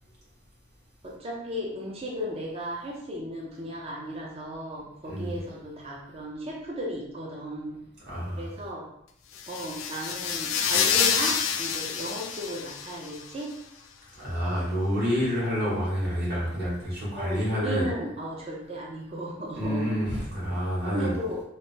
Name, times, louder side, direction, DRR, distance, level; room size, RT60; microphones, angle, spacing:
voice 1, 1.0-7.8 8.3-8.9 9.5-13.5 17.2-19.9 20.9-21.4, equal, 30° right, -3 dB, 0.5 m, -35 dB
voice 2, 5.0-5.4 8.1-8.5 14.1-17.9 19.5-21.1, equal, 55° right, -8 dB, 1.3 m, -28 dB
sound 1, 9.3-13.2, left 7 dB, 75° left, 0.3 m, -27 dB
3.2 x 2.1 x 2.7 m, 0.76 s
head